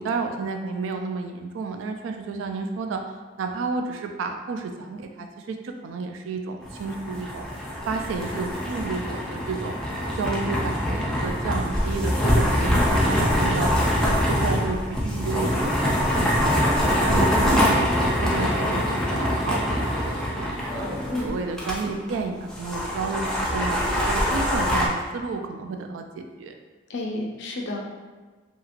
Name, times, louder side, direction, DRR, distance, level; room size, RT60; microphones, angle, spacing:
voice 1, 0.0-3.0 3.4-7.5 7.9-9.8 10.2-13.7 14.0-17.9 18.2-20.9 21.2-26.5, right 4 dB, 90° right, 4 dB, 0.3 m, -31 dB
sound 1, 6.6-21.8 22.1-22.2 22.5-24.9, equal, 5° left, 0.4 m, -24 dB
voice 2, 12.7-13.1 21.1-21.3 26.9-27.8, left 2 dB, 65° left, 0 dB, 0.5 m, -30 dB
2.8 x 2.7 x 2.5 m, 1.4 s
head